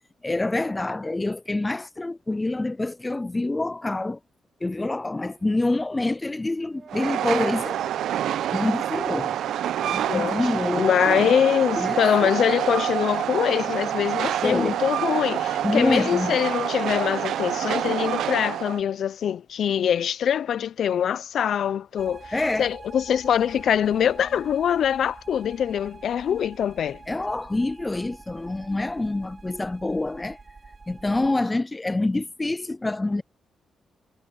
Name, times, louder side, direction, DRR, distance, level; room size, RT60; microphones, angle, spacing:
voice 1, 0.2-4.2 4.6-7.9 8.5-9.4 9.8-11.3 11.8-12.3 14.4-14.8 15.6-16.4 22.3-22.7 27.1-30.4 30.9-33.2, left 2 dB, 20° left, 0.4 m, -26 dB
sound 1, 5.3-11.5, right 6 dB, 55° right, 5.3 m, -53 dB
Train, 6.9-18.8, right 11 dB, 80° right, 0.8 m, -27 dB
voice 2, 10.1-10.4 10.7-22.3 22.6-27.0, left 9 dB, 70° left, 0.7 m, -23 dB
sound 2, 22.0-31.3, right 4 dB, 35° right, 3.4 m, -46 dB
supercardioid pair, 60°, 0 cm